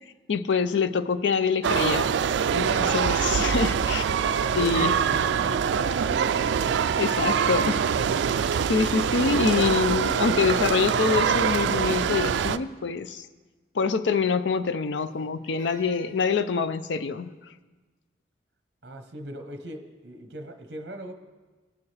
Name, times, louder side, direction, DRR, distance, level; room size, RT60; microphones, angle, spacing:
voice 1, 0.3-2.1 2.5-4.1 4.5-4.9 7.0-7.8 8.7-13.3 13.7-17.3, left 5 dB, 80° left, 11 dB, 0.5 m, -25 dB
sound 1, 1.6-12.6, right 7 dB, 75° right, 0.3 m, -24 dB
voice 2, 3.5-7.7 8.0-8.2 18.8-21.1, right 1 dB, 60° right, 5 dB, 0.9 m, -40 dB
Crying sobbing, 10.2-12.7 14.9-16.4, right 1 dB, 20° right, 2.8 m, -50 dB
18.5 x 7.1 x 3.3 m, 1.3 s
head